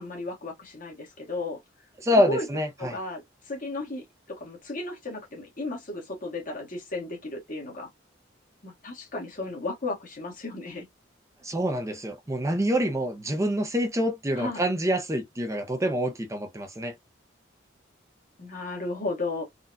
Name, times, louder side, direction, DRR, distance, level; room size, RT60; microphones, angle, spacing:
voice 1, 0.0-1.6 2.1-2.5 2.8-7.9 8.6-10.8 14.3-14.7 18.4-19.4, left 2 dB, 45° left, 1.5 m, -34 dB
voice 2, 2.0-3.0 11.4-16.9, equal, 15° right, 0.5 m, -26 dB
3.9 x 2.2 x 2.5 m
head